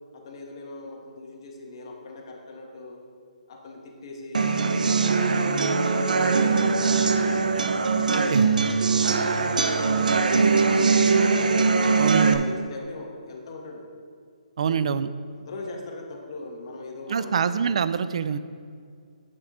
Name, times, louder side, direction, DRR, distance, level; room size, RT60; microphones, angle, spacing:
voice 1, 0.1-3.0 3.5-7.4 8.0-8.4 8.9-11.4 11.7-13.9 14.6-14.8 15.3-17.5, left 3 dB, 40° left, 1 dB, 1.5 m, -40 dB
sound 1, 4.3-12.3, right 4 dB, 85° right, 0.8 m, -21 dB
voice 2, 12.0-12.5 14.6-15.1 17.1-18.4, right 7 dB, 50° right, 13 dB, 0.5 m, -25 dB
10.0 x 5.8 x 5.1 m, 2.2 s
hypercardioid pair, 165°, 4 cm